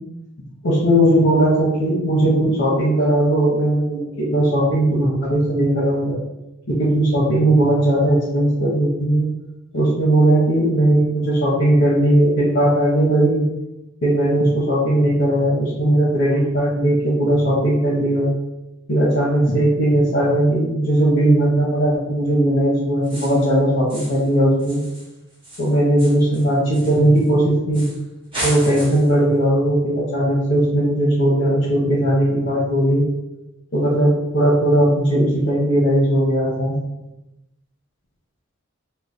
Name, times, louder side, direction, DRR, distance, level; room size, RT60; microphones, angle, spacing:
voice 1, 0.6-6.2 6.7-9.3 9.7-13.4 14.0-18.3 18.9-24.8 25.6-27.9 28.4-33.0 33.7-36.8, right 1 dB, 65° left, -6 dB, 0.8 m, -18 dB
sound 1, 23.0-23.5 23.9-24.3 24.6-27.3 27.7-28.0 28.3-29.2, right 1 dB, 25° right, 0.9 m, -33 dB
3.0 x 2.1 x 3.9 m, 0.95 s
head